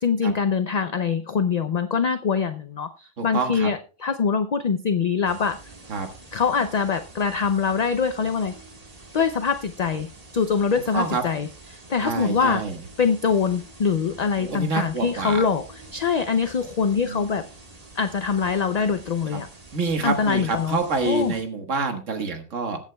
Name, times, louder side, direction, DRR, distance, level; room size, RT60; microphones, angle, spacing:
voice 1, 0.0-5.7 6.3-8.5 9.1-12.6 13.0-15.6 15.9-17.4 18.0-19.5 20.0-20.8 21.1-21.3, left 6 dB, 50° left, 9 dB, 0.5 m, -24 dB
voice 2, 3.2-3.7 5.9-6.1 10.9-11.2 12.0-12.8 14.4-15.4 17.0-17.3 19.3-19.4 19.7-22.8, right 3 dB, 80° right, 6 dB, 1.8 m, -27 dB
sound 1, 5.2-21.4, right 2 dB, 30° right, 1.6 m, -46 dB
21.0 x 8.2 x 2.3 m, 0.37 s
omnidirectional pair, 1.3 m